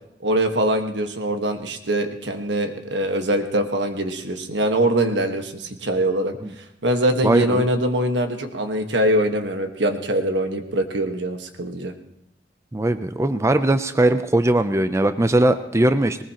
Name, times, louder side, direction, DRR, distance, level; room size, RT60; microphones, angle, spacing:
voice 1, 0.2-6.3 6.8-11.9, right 1 dB, 80° right, 6 dB, 1.5 m, -23 dB
voice 2, 7.2-7.7 12.7-16.2, right 1 dB, 15° right, 10 dB, 0.5 m, -20 dB
20.0 x 19.5 x 2.9 m, 0.79 s
head